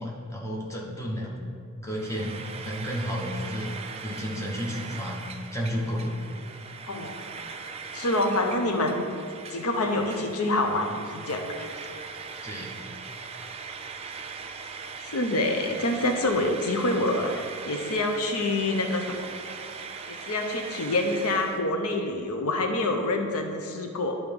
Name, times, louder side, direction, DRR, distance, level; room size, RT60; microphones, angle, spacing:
voice 1, 0.0-1.3 1.8-3.7 4.0-5.3 5.5-6.1 12.4-12.8, equal, 15° left, -4 dB, 1.1 m, -32 dB
Frying (food), 1.9-21.6, right 5 dB, 25° right, 0.3 m, -40 dB
voice 2, 7.9-9.0 9.5-11.7 15.0-19.3 20.1-24.2, left 2 dB, 85° left, 4 dB, 0.7 m, -27 dB
10.5 x 3.7 x 5.2 m, 2.3 s
head